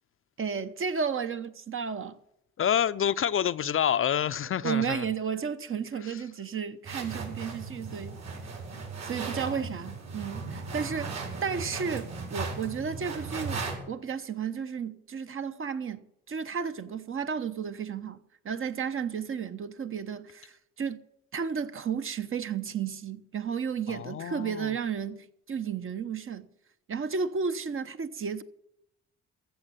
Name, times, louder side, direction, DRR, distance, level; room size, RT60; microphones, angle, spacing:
voice 1, 0.4-2.2 4.6-8.2 9.0-11.1 11.4-18.2 18.4-21.0 21.3-26.5 26.9-28.4, right 6 dB, 45° right, 1.0 m, -33 dB
voice 2, 2.6-5.0 6.0-6.1 9.4-9.6 23.9-24.7, left 9 dB, 45° left, 0.5 m, -28 dB
sound 1, 6.8-13.7, right 4 dB, 60° right, 4.6 m, -37 dB
14.5 x 7.0 x 8.9 m
cardioid pair, 90°, 30 cm